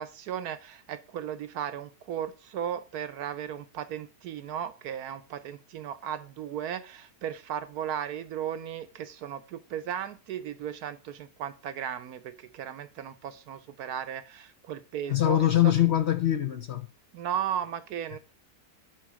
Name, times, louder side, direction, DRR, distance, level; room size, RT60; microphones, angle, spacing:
voice 1, 0.0-15.7 17.1-18.2, right 9 dB, 75° right, 1.3 m, -36 dB
voice 2, 15.1-16.9, left 12 dB, 50° left, 1.0 m, -23 dB
10.5 x 4.0 x 6.3 m
omnidirectional pair, 1.7 m